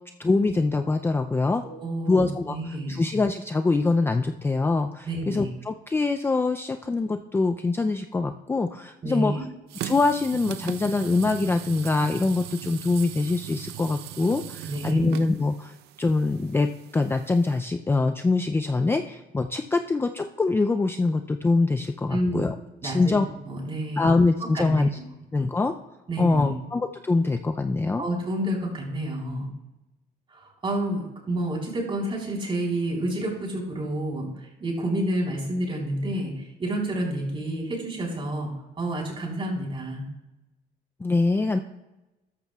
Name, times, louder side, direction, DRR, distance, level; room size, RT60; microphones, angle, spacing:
voice 1, 0.2-1.6 2.1-9.5 9.8-16.7 16.9-22.5 22.8-23.2 24.0-24.9 25.3-25.7 26.2-28.0 41.0-41.6, left 3 dB, 15° left, 7 dB, 0.4 m, -24 dB
voice 2, 1.6-3.0 5.0-5.5 9.0-9.4 14.7-15.1 22.1-22.5 22.8-23.1 23.5-24.1 24.5-25.0 26.1-26.6 28.0-29.5 30.3-34.3 34.6-40.1, right 1 dB, 30° right, -1 dB, 3.9 m, -29 dB
sound 1, 9.7-17.6, right 12 dB, 80° right, 0.6 m, -39 dB
13.5 x 12.0 x 2.3 m, 0.98 s
cardioid pair, 110°, 17 cm